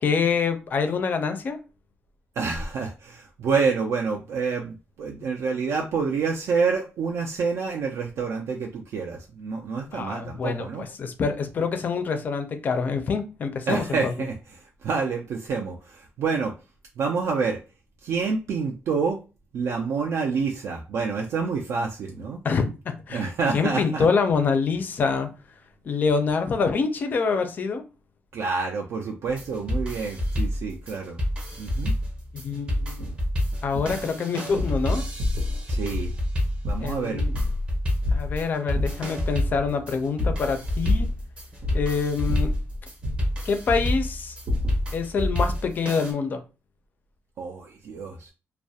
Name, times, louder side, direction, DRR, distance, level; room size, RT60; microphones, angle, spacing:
voice 1, 0.0-1.6 9.9-14.1 22.4-22.7 23.1-25.3 25.8-27.8 32.3-33.1 33.6-35.0 36.8-37.3 38.1-41.1 41.7-42.5 43.5-44.4 44.9-46.4, left 5 dB, 40° left, 0.4 m, -26 dB
voice 2, 2.4-10.8 13.7-16.5 17.0-17.6 18.0-19.2 19.5-22.4 23.1-24.1 28.3-31.2 31.6-31.9 35.7-36.1 36.6-37.2 47.4-48.3, right 5 dB, 65° right, 0.3 m, -28 dB
sound 1, 29.3-46.1, left 1 dB, 25° right, 0.6 m, -29 dB
sound 2, 33.0-33.2 33.7-34.1 34.5-34.8 35.2-35.6 35.9-36.2 36.6-37.7 38.0-39.0 39.4-39.7 40.2-41.2 41.6-42.0 42.3-43.3 43.8-44.1 44.5-44.9 45.2-45.5, left 2 dB, 85° right, 0.7 m, -28 dB
2.3 x 2.0 x 2.7 m
wide cardioid pair, 170°, 5 cm